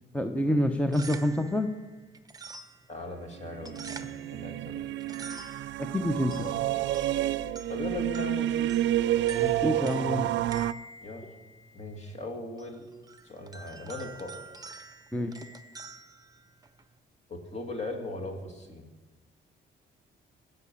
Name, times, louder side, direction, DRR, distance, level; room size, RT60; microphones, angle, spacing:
voice 1, 0.1-1.7 5.9-6.5 9.4-10.3 15.1-15.3, left 1 dB, 5° left, 7 dB, 0.8 m, -27 dB
sound 1, 0.7-17.0, right 4 dB, 20° right, 0.9 m, -48 dB
voice 2, 2.9-5.0 6.2-6.5 7.7-8.8 11.0-11.3 11.7-12.9 13.2-14.3 17.3-18.9, left 2 dB, 35° left, 1 dB, 2.7 m, -39 dB
sound 2, 3.5-10.7, right 13 dB, 70° right, 0.4 m, -29 dB
17.0 x 6.7 x 7.1 m, 1.2 s
cardioid pair, 90°, 20 cm